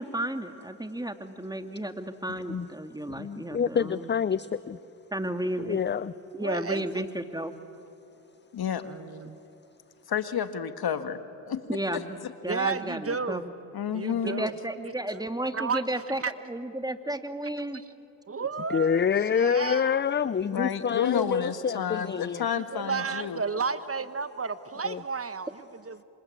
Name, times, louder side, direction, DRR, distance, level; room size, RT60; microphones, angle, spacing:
voice 1, 0.0-4.1 5.1-5.8 6.3-7.5 11.7-12.2 12.4-13.5 14.2-16.2 16.5-17.8, right 1 dB, 10° right, 8 dB, 2.2 m, -33 dB
voice 2, 3.1-4.8 5.6-6.1 18.7-22.4 24.8-25.0, left 7 dB, 25° left, 17 dB, 0.6 m, -27 dB
voice 3, 6.4-7.0 8.8-9.4 12.5-13.4 13.9-14.5 14.8-14.9 15.5-16.3 17.6-17.8 18.3-19.1 19.3-20.0 22.7-26.0, right 5 dB, 30° right, 13 dB, 1.2 m, -32 dB
voice 4, 8.5-8.8 10.1-11.2 11.5-12.3 13.7-14.4 20.5-23.4, left 8 dB, 55° left, 10 dB, 1.9 m, -30 dB
26.5 x 26.0 x 8.6 m, 2.8 s
supercardioid pair, 50°, 43 cm